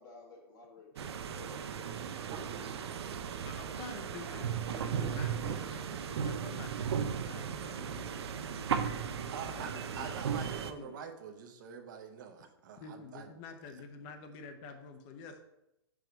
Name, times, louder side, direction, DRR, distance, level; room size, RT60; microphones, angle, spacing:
voice 1, 0.0-2.7, left 3 dB, 50° left, 1.2 m, -55 dB
sound 1, 1.0-10.7, right 7 dB, 75° right, 0.5 m, -36 dB
Thunder, 1.8-6.6, right 6 dB, 20° right, 0.4 m, -48 dB
voice 2, 2.4-2.7 3.4-8.2 9.5-11.0 12.8-15.4, left 5 dB, 25° left, 0.6 m, -49 dB
voice 3, 9.3-13.3, right 6 dB, 45° right, 0.8 m, -45 dB
4.9 x 4.5 x 5.0 m
hypercardioid pair, 160°, 14 cm